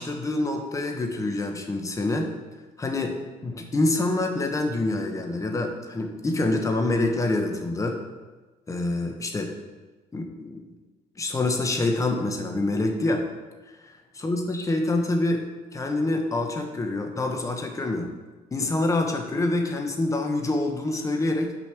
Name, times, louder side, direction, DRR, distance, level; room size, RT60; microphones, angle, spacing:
voice 1, 0.0-2.3 2.8-8.0 8.7-9.5 10.1-10.6 11.2-13.3 14.2-15.5 15.7-18.1 18.5-21.6, left 2 dB, 20° left, 3 dB, 1.1 m, -26 dB
6.3 x 5.2 x 6.0 m, 1.2 s
cardioid pair, 110°, 15 cm